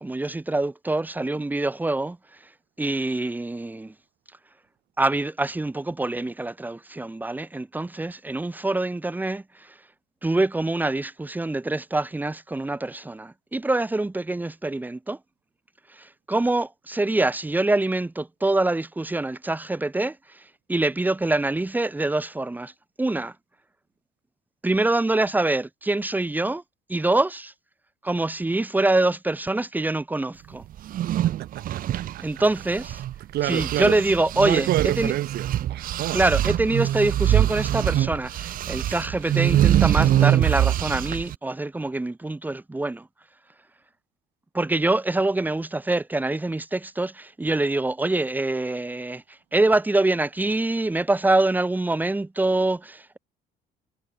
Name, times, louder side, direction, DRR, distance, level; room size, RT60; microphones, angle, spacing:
voice 1, 0.0-2.2 2.8-3.9 5.0-9.4 10.2-15.2 16.0-20.2 20.7-22.7 23.0-23.3 24.6-26.6 26.9-27.5 28.0-30.6 32.2-33.0 33.4-35.1 36.1-43.1 44.5-49.2 49.5-53.2, right 2 dB, 10° right, 1.2 m, -25 dB
sound 1, 30.8-33.2 33.5-41.4, right 12 dB, 55° right, 0.8 m, -23 dB
voice 2, 31.4-32.4 33.3-34.0 34.3-36.3, right 15 dB, 75° right, 6.6 m, -28 dB
cardioid pair, 110°, 17 cm